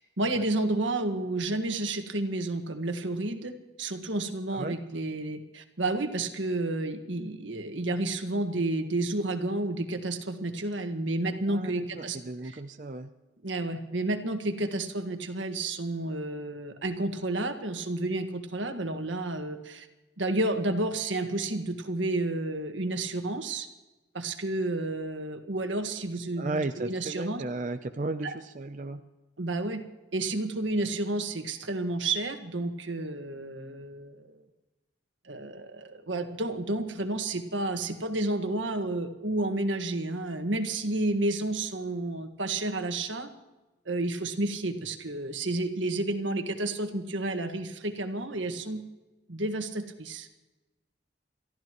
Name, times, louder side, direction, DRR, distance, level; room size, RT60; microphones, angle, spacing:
voice 1, 0.2-12.2 12.4-12.6 13.4-19.9 20.2-23.7 24.1-27.4 29.4-29.8 30.1-34.4 35.2-43.3 43.8-48.8 49.3-50.3, right 2 dB, 85° right, 6 dB, 1.7 m, -31 dB
voice 2, 11.5-13.1 26.4-29.0, right 2 dB, 40° right, 7 dB, 0.6 m, -35 dB
29.5 x 14.5 x 3.1 m, 1.1 s
head